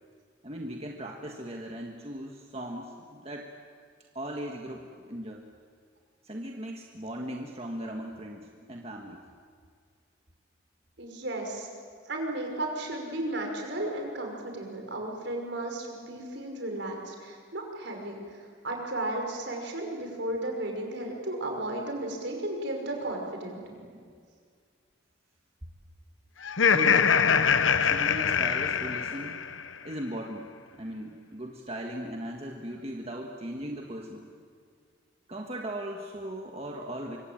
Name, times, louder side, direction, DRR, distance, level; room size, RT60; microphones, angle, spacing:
voice 1, 0.4-3.5 4.1-5.4 6.2-9.2 23.6-24.1 26.7-27.1 27.8-29.4 29.8-34.3 35.3-37.2, equal, 30° right, 1 dB, 1.7 m, -38 dB
voice 2, 11.0-11.7 12.1-23.6, right 1 dB, 65° right, 2 dB, 5.7 m, -34 dB
Laughter, 26.4-29.7, left 6 dB, 80° left, 0.9 m, -24 dB
25.0 x 24.5 x 9.0 m, 2.1 s
head